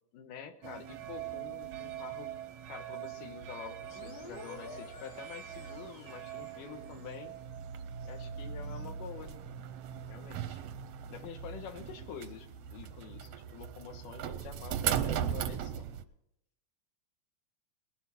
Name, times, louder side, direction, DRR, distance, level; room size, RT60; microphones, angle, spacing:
voice 1, 0.1-2.3 2.7-7.3 8.0-9.4 10.1-10.6 11.1-16.0, left 7 dB, 85° left, 6 dB, 2.8 m, -47 dB
sound 1, 0.6-16.0, right 9 dB, 75° right, 1.4 m, -39 dB
sound 2, 3.8-7.3, left 3 dB, 70° left, 4.7 m, -50 dB
20.5 x 11.0 x 4.2 m, 0.82 s
omnidirectional pair, 3.7 m